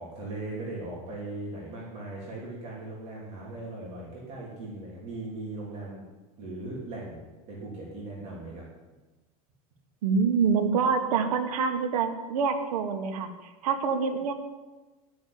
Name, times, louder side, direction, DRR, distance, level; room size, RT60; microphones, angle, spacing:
voice 1, 0.0-6.0 6.4-8.6, right 2 dB, 35° right, -4 dB, 3.4 m, -39 dB
voice 2, 10.0-13.3 13.6-14.3, right 5 dB, 80° right, 6 dB, 1.7 m, -26 dB
12.0 x 6.5 x 8.6 m, 1.2 s
supercardioid pair, 150°, 19 cm